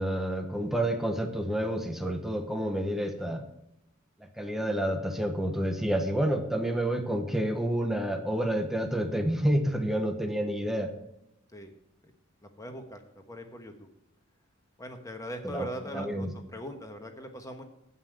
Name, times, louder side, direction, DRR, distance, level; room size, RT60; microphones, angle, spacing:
voice 1, 0.0-3.4 4.2-10.9 15.4-15.7 15.9-16.3, right 1 dB, ahead, 5 dB, 0.9 m, -29 dB
voice 2, 12.4-13.0 13.3-13.7 14.8-17.6, equal, 15° left, 5 dB, 1.2 m, -41 dB
8.8 x 5.6 x 7.8 m, 0.83 s
head